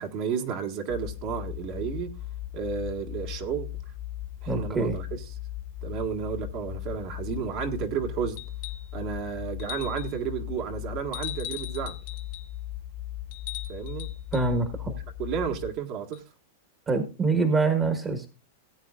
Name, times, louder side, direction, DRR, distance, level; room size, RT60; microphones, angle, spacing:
voice 1, 0.0-2.1 2.5-3.7 4.4-5.1 5.8-8.4 8.9-12.0 13.7-14.1 15.2-16.2, right 7 dB, 45° right, 1.6 m, -32 dB
sound 1, 0.9-15.7, left 14 dB, 15° left, 0.9 m, -38 dB
voice 2, 4.5-4.9 14.3-14.9 16.9-18.3, right 3 dB, 20° right, 1.4 m, -25 dB
sound 2, 8.4-8.9 9.6-10.2 11.1-12.5 13.3-14.5 16.1-16.2, left 15 dB, 55° left, 1.0 m, -40 dB
18.0 x 8.7 x 2.4 m
supercardioid pair, 145°, 0 cm